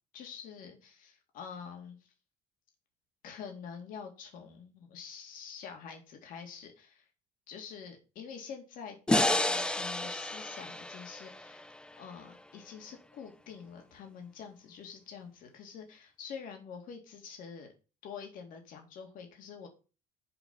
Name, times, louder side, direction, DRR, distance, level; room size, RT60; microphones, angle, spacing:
voice 1, 0.1-2.1 3.2-7.1 7.5-11.7 12.0-17.7 18.0-19.7, left 6 dB, 60° left, 3 dB, 2.3 m, -46 dB
sound 1, 9.1-12.3, left 1 dB, 5° left, 0.5 m, -31 dB
6.9 x 5.3 x 7.1 m, 0.33 s
cardioid pair, 160°, 16 cm